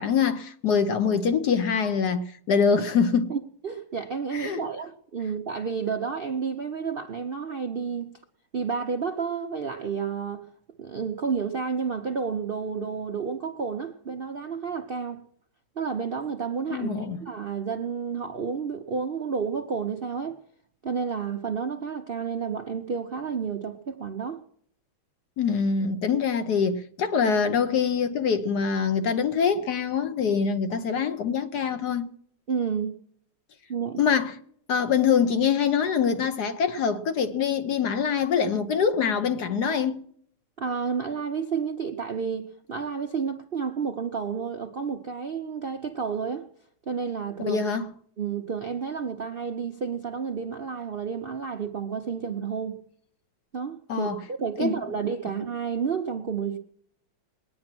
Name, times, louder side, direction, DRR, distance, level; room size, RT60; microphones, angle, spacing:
voice 1, 0.0-3.3 4.3-4.6 16.7-17.2 25.4-32.1 34.0-34.4 34.7-40.0 47.4-47.9 53.9-54.2 54.6-54.7, left 6 dB, 60° left, 1.2 m, -24 dB
voice 2, 3.3-8.1 8.5-10.5 10.8-15.2 15.8-16.9 17.2-20.4 20.8-24.4 32.5-32.9 33.7-34.0 40.6-46.5 46.9-47.6 48.2-52.8 53.5-54.1 54.4-56.6, right 6 dB, 70° right, 0.5 m, -30 dB
20.0 x 9.7 x 6.0 m
omnidirectional pair, 2.3 m